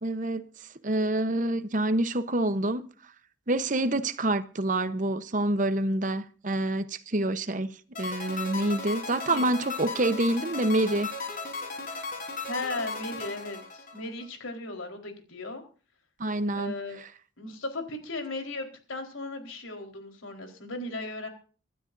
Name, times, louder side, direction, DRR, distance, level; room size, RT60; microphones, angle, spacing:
voice 1, 0.0-0.5 0.8-2.9 3.5-11.1 16.2-16.7, right 1 dB, 40° right, 0.9 m, -27 dB
sound 1, 8.0-14.3, left 3 dB, 45° left, 4.1 m, -36 dB
voice 2, 12.4-15.6 16.5-17.0 17.4-21.3, left 2 dB, 90° left, 4.2 m, -36 dB
26.0 x 12.5 x 2.6 m
head